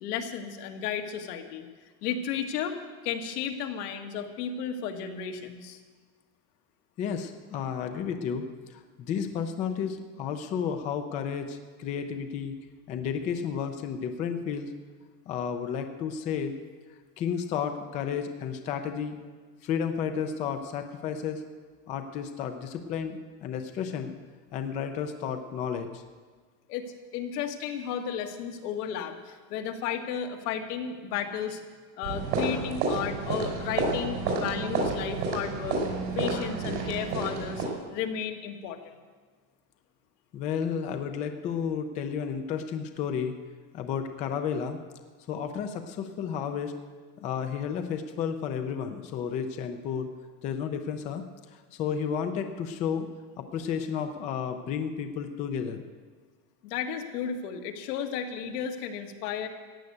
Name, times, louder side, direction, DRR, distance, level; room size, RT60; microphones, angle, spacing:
voice 1, 0.0-1.7 2.0-2.8 3.0-5.8 26.7-26.9 27.1-31.6 32.0-35.8 36.1-38.8 56.6-59.5, left 8 dB, 85° left, 4 dB, 1.8 m, -33 dB
voice 2, 7.0-12.5 12.9-14.7 15.3-16.5 17.2-19.2 19.6-21.4 21.9-24.1 24.5-26.0 40.3-43.3 43.7-44.8 45.3-46.7 47.2-50.1 50.4-51.2 51.5-53.1 53.4-55.8, left 7 dB, 20° left, 7 dB, 0.3 m, -32 dB
sound 1, 32.0-37.7, right 3 dB, 90° right, 5.2 m, -30 dB
15.0 x 7.9 x 9.5 m, 1.5 s
cardioid pair, 175°, 45 cm